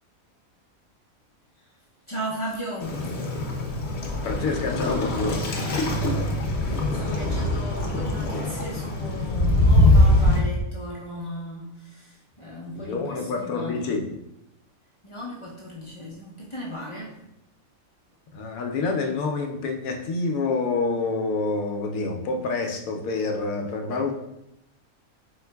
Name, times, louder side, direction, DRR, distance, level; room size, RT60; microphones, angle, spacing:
voice 1, 2.1-3.6 5.5-13.9 15.0-17.2, right 1 dB, 35° left, -6 dB, 0.5 m, -37 dB
Waves surf, 2.8-10.4, left 1 dB, 55° left, 0.9 m, -22 dB
voice 2, 4.2-5.5 12.8-14.0 18.3-24.1, left 3 dB, 80° left, 3 dB, 1.1 m, -27 dB
4.4 x 3.8 x 2.2 m, 0.84 s
omnidirectional pair, 1.4 m